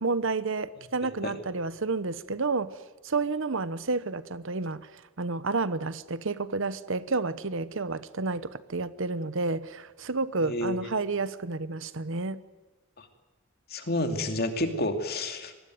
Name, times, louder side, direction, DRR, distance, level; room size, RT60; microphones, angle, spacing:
voice 1, 0.0-2.7 3.0-12.4, right 3 dB, 60° right, 15 dB, 0.9 m, -30 dB
voice 2, 10.4-10.8 13.0-13.1 13.7-15.6, left 1 dB, 45° left, 6 dB, 2.7 m, -29 dB
25.0 x 20.0 x 9.4 m, 1.2 s
head